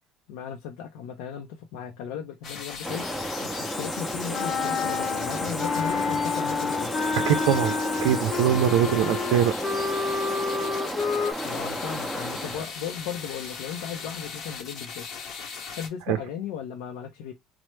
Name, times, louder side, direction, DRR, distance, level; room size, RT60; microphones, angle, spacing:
voice 1, 0.3-6.9 11.4-15.1 15.8-17.3, left 8 dB, 85° left, 0.5 m, -36 dB
sound 1, 2.4-15.9, left 5 dB, 55° left, 0.8 m, -39 dB
Village ambience rooster and light birds with wind, 2.8-12.6, equal, 5° left, 0.5 m, -33 dB
Wind instrument woodwind instrument, 4.3-11.3, left 4 dB, 35° left, 1.0 m, -29 dB
voice 2, 7.3-7.8 8.0-9.5 16.1-16.2, right 10 dB, 80° right, 0.4 m, -22 dB
3.1 x 2.0 x 3.1 m
supercardioid pair, 100°, 0 cm